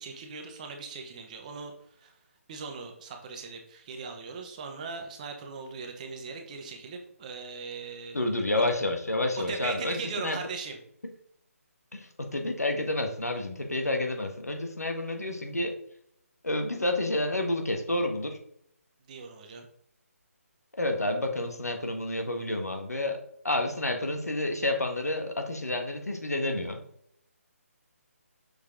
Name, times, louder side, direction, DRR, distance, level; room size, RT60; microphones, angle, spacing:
voice 1, 0.0-2.1 2.5-8.4 9.5-10.8 19.1-19.7, right 4 dB, 30° right, 3 dB, 1.1 m, -39 dB
voice 2, 8.1-10.4 11.9-15.8 16.4-18.4 20.7-26.8, left 1 dB, 90° left, 5 dB, 1.4 m, -29 dB
6.7 x 4.5 x 3.7 m, 0.68 s
figure-of-eight pair, 155°, 8 cm